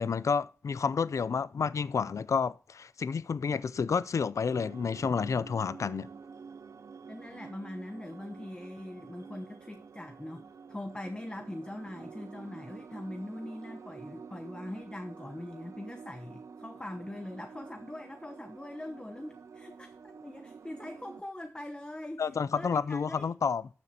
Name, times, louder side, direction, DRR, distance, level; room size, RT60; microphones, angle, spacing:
voice 1, 0.0-6.1 22.2-23.6, left 5 dB, 80° left, 0.4 m, -30 dB
sound 1, 4.4-21.2, right 5 dB, 75° right, 0.4 m, -49 dB
voice 2, 7.1-22.2 22.5-23.3, left 1 dB, 20° left, 0.9 m, -42 dB
13.0 x 7.1 x 2.8 m
wide cardioid pair, 65°, 5 cm